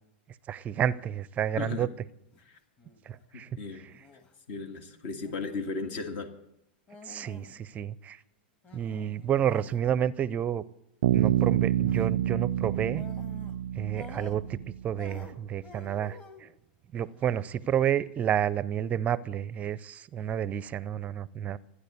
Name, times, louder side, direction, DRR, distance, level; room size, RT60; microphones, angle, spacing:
voice 1, 0.5-1.9 3.0-3.5 7.0-8.2 8.7-10.6 11.1-13.0 13.7-16.5 16.9-21.6, right 9 dB, 25° right, 0.5 m, -30 dB
voice 2, 1.5-1.9 2.5-2.6 3.3-3.9 4.5-6.3, left 4 dB, 60° left, 1.9 m, -36 dB
sound 1, 2.2-2.4 2.8-3.2 3.9-4.3 5.2-5.6 6.9-7.6 7.8-7.9 8.6-9.9 11.1-11.5 11.8-12.1 12.9-13.6 13.9-14.7 15.0-16.5 17.0-17.5, left 4 dB, 25° left, 1.8 m, -50 dB
Bass guitar, 11.0-14.7, right 12 dB, 75° right, 0.4 m, -27 dB
14.5 x 9.9 x 8.4 m
hypercardioid pair, 130°, 6 cm